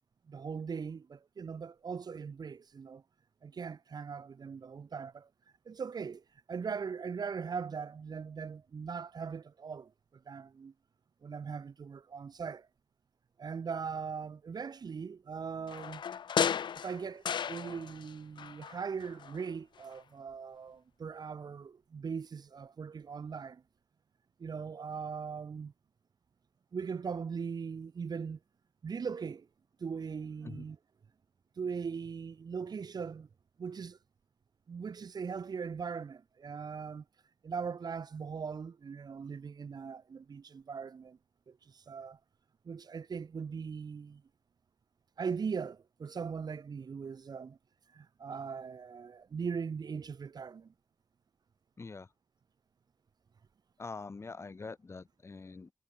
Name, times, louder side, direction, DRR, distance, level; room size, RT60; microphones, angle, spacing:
voice 1, 0.3-3.0 3.4-5.3 5.6-10.7 11.2-12.7 13.4-16.0 16.8-23.6 24.4-25.7 26.7-28.4 28.8-29.5 29.8-30.8 31.6-33.3 33.6-34.0 34.7-37.0 37.4-41.2 41.5-42.2 42.6-44.2 45.2-47.6 47.9-50.7, right 6 dB, 60° right, 2.8 m, -40 dB
sound 1, 15.7-18.1 18.4-19.5 19.8-19.9, left 8 dB, 80° left, 0.5 m, -34 dB
voice 2, 51.8-52.1 53.8-55.7, left 4 dB, 35° left, 3.6 m, -44 dB
wide cardioid pair, 170°, 8 cm